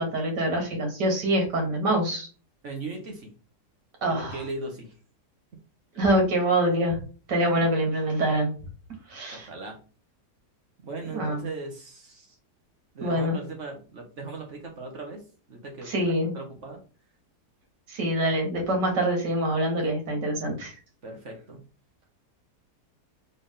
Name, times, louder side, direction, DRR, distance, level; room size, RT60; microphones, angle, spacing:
voice 1, 0.0-2.3 4.0-4.4 6.0-7.0 7.3-8.5 9.1-9.5 11.1-11.4 13.0-13.4 15.9-16.3 17.9-20.7, right 1 dB, 80° right, 2 dB, 2.3 m, -25 dB
voice 2, 2.6-3.3 4.1-4.9 7.6-7.7 9.3-9.8 10.8-12.4 12.9-16.8 21.0-21.7, right 3 dB, 50° right, 2 dB, 1.3 m, -38 dB
4.1 x 3.6 x 3.6 m, 0.37 s
omnidirectional pair, 1.8 m